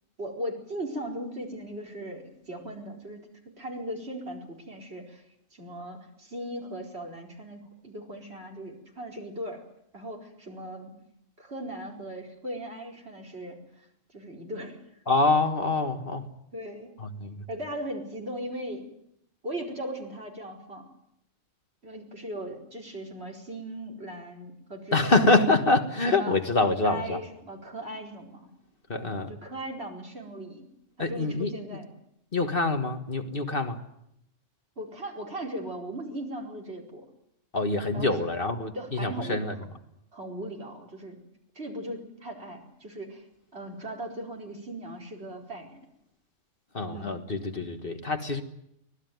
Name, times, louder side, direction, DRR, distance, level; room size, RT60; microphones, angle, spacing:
voice 1, 0.2-5.2 5.5-9.6 9.9-10.9 11.4-13.6 14.1-14.8 16.5-16.9 17.5-18.9 19.4-20.9 21.8-25.4 26.1-26.4 26.8-28.5 29.0-30.6 31.1-31.9 34.8-37.1 37.9-38.3 38.7-39.4 40.1-41.2 41.5-43.2 43.5-45.8 46.9-47.2, right 1 dB, 55° right, 0 dB, 4.8 m, -38 dB
voice 2, 15.1-16.3 17.0-17.4 24.9-27.2 28.9-29.3 31.0-31.5 32.3-33.8 37.5-39.6 46.7-48.4, left 3 dB, 45° left, 6 dB, 1.8 m, -25 dB
25.0 x 18.5 x 9.4 m, 0.79 s
omnidirectional pair, 1.3 m